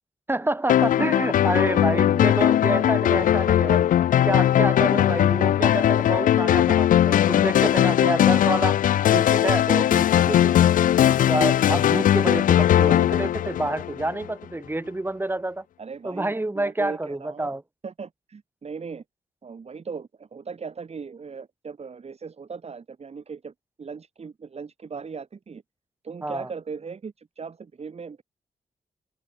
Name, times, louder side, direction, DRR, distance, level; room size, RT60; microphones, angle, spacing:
voice 1, 0.3-3.9 4.2-8.8 9.1-10.7 11.3-15.6 16.0-17.6 26.2-26.5, right 2 dB, 15° right, 2.7 m, -28 dB
sound 1, 0.7-14.2, left 11 dB, 80° left, 0.4 m, -19 dB
voice 2, 1.4-1.7 2.5-2.8 3.7-3.9 15.8-17.5 17.8-19.0 19.4-25.6 26.0-28.2, right 5 dB, 50° right, 4.9 m, -38 dB
cardioid pair, 80°, 14 cm